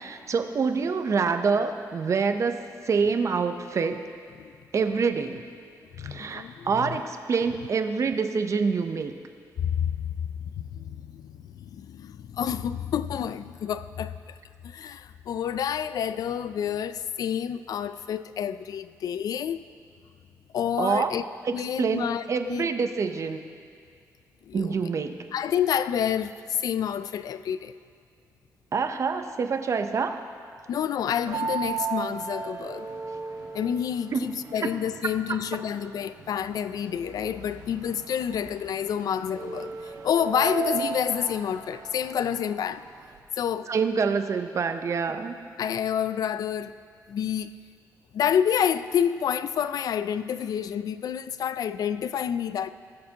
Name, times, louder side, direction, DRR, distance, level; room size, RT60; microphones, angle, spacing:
voice 1, 0.0-4.1 4.7-5.5 6.0-9.1 20.8-21.1 21.8-23.4 24.5-25.3 28.7-30.2 34.1-34.2 34.6-34.7 43.7-45.3, right 5 dB, 45° right, 0.7 m, -26 dB
voice 2, 6.0-7.0 9.6-10.3 10.6-14.4 14.6-19.6 20.5-21.2 21.5-22.7 24.5-24.8 25.3-27.7 30.7-32.9 33.5-42.8 43.4-43.7 45.6-46.7 47.1-47.5 48.1-52.7, left 8 dB, 65° left, 0.4 m, -29 dB
sound 1, 31.3-43.2, right 6 dB, 70° right, 1.0 m, -36 dB
19.5 x 6.6 x 2.9 m
cardioid pair, 90°, 7 cm